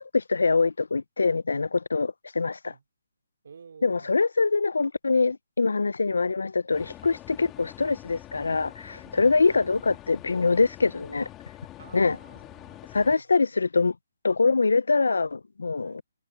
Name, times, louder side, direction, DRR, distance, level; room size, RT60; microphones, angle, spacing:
voice 1, 0.0-2.7 3.8-11.3 11.9-12.2 12.9-14.0 14.2-16.0, left 4 dB, 90° left, 0.5 m, -24 dB
voice 2, 3.4-4.2 5.8-5.9 8.8-9.1 9.5-9.6 11.8-13.2 15.8-16.0, right 6 dB, 60° right, 3.1 m, -51 dB
sound 1, 6.7-13.2, left 15 dB, 15° left, 2.3 m, -46 dB
hypercardioid pair, 165°, 0 cm